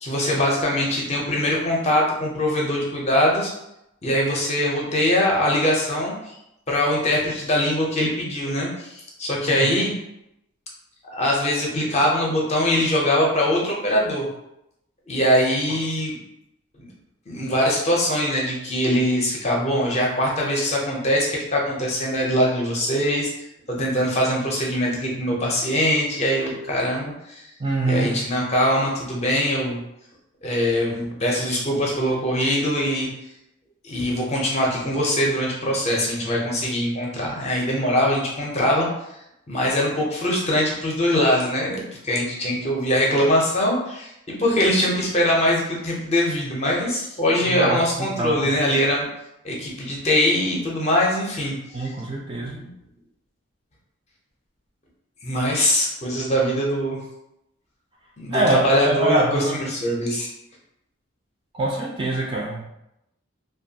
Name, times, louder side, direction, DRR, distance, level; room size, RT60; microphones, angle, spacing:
voice 1, 0.0-3.5 4.0-6.1 6.7-9.9 11.1-14.3 15.1-16.2 17.3-23.3 23.7-27.5 27.8-29.8 30.4-33.1 33.8-38.9 39.5-49.1 49.4-51.6 51.8-51.9 52.4-52.7 55.2-57.0 58.2-60.3, equal, 30° left, -2 dB, 0.5 m, -22 dB
voice 2, 27.6-28.1 47.5-48.4 51.7-52.6 58.3-58.6 58.8-59.6 61.5-62.6, right 2 dB, 25° right, -2 dB, 0.3 m, -24 dB
2.5 x 2.2 x 2.7 m, 0.85 s
head